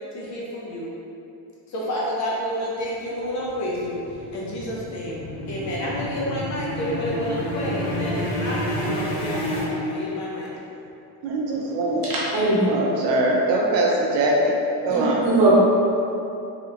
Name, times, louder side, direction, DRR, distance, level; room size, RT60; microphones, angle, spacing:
voice 1, 0.1-0.9 1.7-5.2 5.4-10.5, equal, 40° left, 0.5 m, -30 dB
sound 1, 3.2-10.5, left 1 dB, 60° left, 0.8 m, -29 dB
voice 2, 11.2-12.0 12.7-14.6 14.8-15.2, right 1 dB, 65° right, 0.6 m, -22 dB
voice 3, 12.0-12.7 14.9-15.5, right 2 dB, 50° right, 1.0 m, -21 dB
3.4 x 2.7 x 2.4 m
cardioid pair, 155°, 48 cm